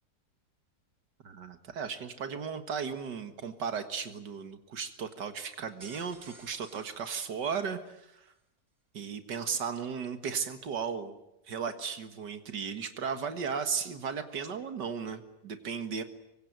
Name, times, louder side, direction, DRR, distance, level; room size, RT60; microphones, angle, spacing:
voice 1, 1.2-8.2 8.9-11.2 11.5-16.0, right 6 dB, 90° right, 9 dB, 2.3 m, -35 dB
sound 1, 5.5-8.0, right 2 dB, 55° right, 3.6 m, -55 dB
25.0 x 24.0 x 9.2 m, 0.85 s
omnidirectional pair, 1.8 m